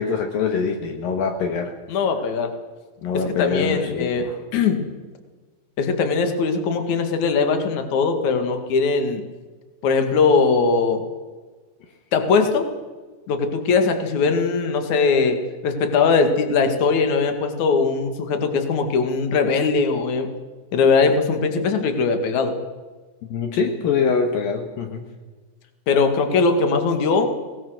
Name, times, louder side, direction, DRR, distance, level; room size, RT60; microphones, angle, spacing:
voice 1, 0.0-1.7 3.0-4.4 23.3-25.1, left 5 dB, 70° left, 4 dB, 3.1 m, -24 dB
voice 2, 1.9-2.5 3.1-4.8 5.8-9.2 9.8-11.0 12.1-12.7 13.3-15.4 15.6-20.3 20.7-22.5 25.9-27.3, left 4 dB, 55° left, 6 dB, 3.1 m, -20 dB
23.5 x 19.5 x 6.5 m, 1.3 s
omnidirectional pair, 4.4 m